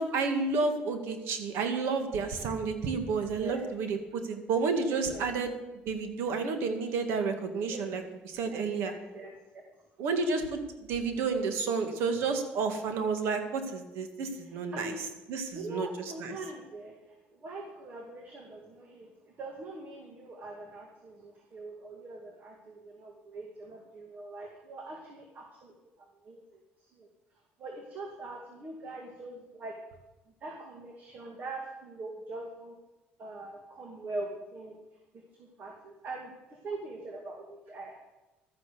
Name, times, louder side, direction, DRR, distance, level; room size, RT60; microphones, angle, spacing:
voice 1, 0.0-5.5 5.9-8.9 10.0-10.6 10.9-15.9 16.2-16.4, right 4 dB, 75° right, 7 dB, 2.1 m, -31 dB
voice 2, 3.4-3.7 5.1-5.4 7.6-7.8 8.5-9.4 14.7-15.0 15.5-26.6 27.0-27.1 27.6-29.8 30.4-32.7 33.2-34.8 35.4-38.0, right 2 dB, 45° right, 2 dB, 2.4 m, -43 dB
13.0 x 10.0 x 7.0 m, 1.1 s
cardioid pair, 115°, 4 cm